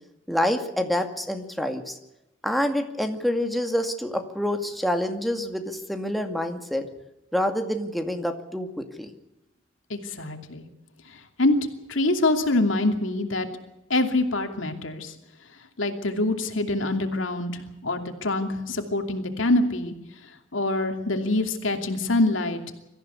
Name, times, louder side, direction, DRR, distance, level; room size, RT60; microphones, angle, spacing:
voice 1, 0.3-2.0 2.4-6.9 7.3-9.1, left 1 dB, ahead, 4 dB, 2.2 m, -27 dB
voice 2, 9.9-10.6 11.4-11.6 11.9-13.5 13.9-15.1 15.8-17.5 17.8-19.9 20.5-22.7, left 2 dB, 75° left, 5 dB, 2.8 m, -25 dB
24.0 x 15.0 x 8.3 m, 0.91 s
head